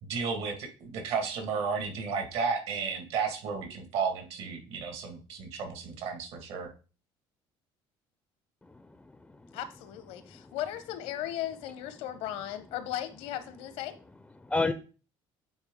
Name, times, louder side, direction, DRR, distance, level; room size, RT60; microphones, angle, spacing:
voice 1, 0.0-6.7, right 5 dB, 75° right, 1.7 m, -33 dB
voice 2, 8.6-9.6 10.1-10.6 14.4-14.7, left 3 dB, 10° left, 0.4 m, -33 dB
voice 3, 9.5-14.0, left 12 dB, 80° left, 0.9 m, -36 dB
8.8 x 3.8 x 3.6 m
cardioid pair, 130°, 10 cm